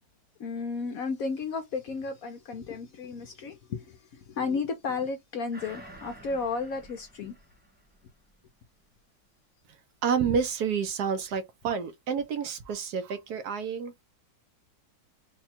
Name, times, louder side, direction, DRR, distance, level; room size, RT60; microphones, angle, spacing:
voice 1, 0.4-7.4, left 4 dB, 65° left, 0.9 m, -33 dB
sound 1, 5.5-8.4 8.8-8.9, right 1 dB, 10° right, 0.4 m, -50 dB
voice 2, 10.0-13.9, right 6 dB, 70° right, 1.1 m, -29 dB
3.7 x 2.2 x 4.2 m
omnidirectional pair, 2.0 m